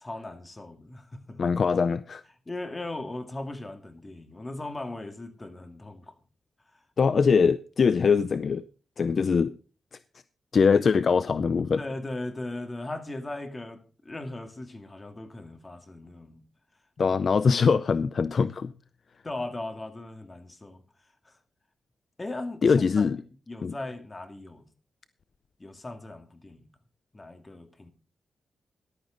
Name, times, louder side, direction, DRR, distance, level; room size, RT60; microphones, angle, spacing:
voice 1, 0.0-1.4 2.5-6.1 11.8-16.4 17.1-17.2 19.2-20.8 21.3-21.4 22.2-23.1 23.5-24.7 25.6-26.7 27.1-27.9, left 2 dB, 25° left, 2.1 m, -38 dB
voice 2, 1.4-2.2 7.0-8.6 9.0-9.5 10.5-11.8 17.0-18.7 22.6-23.2 23.6-23.7, left 5 dB, 55° left, 0.5 m, -22 dB
14.0 x 11.5 x 3.9 m
cardioid pair, 85°, 0 cm